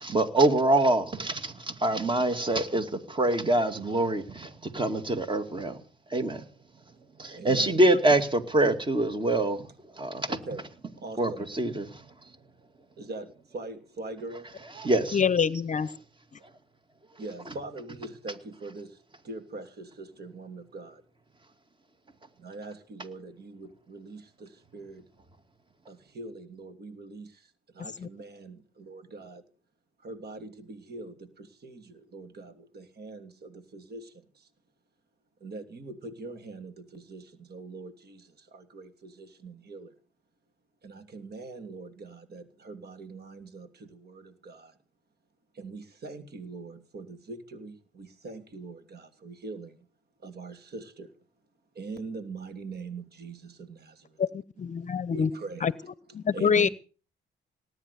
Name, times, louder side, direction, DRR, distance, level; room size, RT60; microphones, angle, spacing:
voice 1, 0.0-5.8 6.1-6.4 7.2-9.7 10.0-10.4 11.2-12.0 14.8-15.2, right 1 dB, 25° right, 2.4 m, -25 dB
voice 2, 7.3-7.7 10.3-10.7 11.0-11.5 13.0-14.6 17.2-19.0 19.2-21.0 22.4-25.0 25.9-29.4 30.0-34.5 35.4-39.9 40.8-44.8 45.5-49.9 50.2-51.1 51.7-54.2 54.8-55.7 56.1-56.7, right 3 dB, 55° right, 3.0 m, -43 dB
voice 3, 15.1-15.9 54.2-55.3 55.6-55.7 56.1-56.7, left 6 dB, 40° left, 0.8 m, -25 dB
19.0 x 9.9 x 6.9 m
cardioid pair, 90°, 20 cm